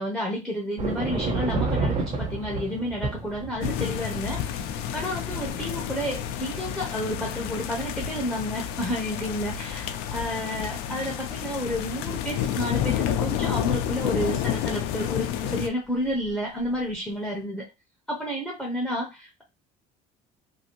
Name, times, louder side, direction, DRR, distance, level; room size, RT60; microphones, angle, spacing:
voice 1, 0.0-4.4 4.9-17.7 18.1-19.4, equal, ahead, -2 dB, 0.7 m, -31 dB
sound 1, 0.8-9.4 9.9-10.5 11.0-11.1 12.2-12.9 13.6-14.0 16.1-16.3 16.6-16.8, right 3 dB, 45° right, 1.4 m, -33 dB
sound 2, 3.6-15.7, left 10 dB, 85° left, 0.5 m, -30 dB
2.7 x 2.6 x 2.9 m, 0.23 s
cardioid pair, 140°, 16 cm